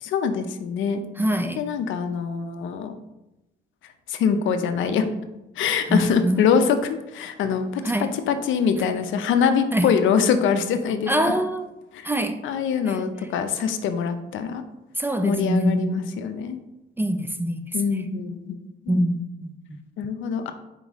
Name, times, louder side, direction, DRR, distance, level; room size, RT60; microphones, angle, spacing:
voice 1, 0.0-1.0 1.6-2.9 4.1-5.0 5.6-11.3 11.9-12.1 12.4-14.6 15.2-16.6 17.7-18.6 18.9-19.0 20.0-20.5, left 6 dB, 75° left, 8 dB, 0.5 m, -24 dB
voice 2, 1.2-1.6 5.9-6.4 7.8-8.1 9.7-9.9 11.1-11.7 12.0-12.4 12.9-13.0 15.0-16.1 17.0-18.1 18.9-19.8, right 1 dB, 10° right, 7 dB, 0.3 m, -25 dB
4.4 x 3.9 x 3.0 m, 0.96 s
cardioid pair, 90°, 20 cm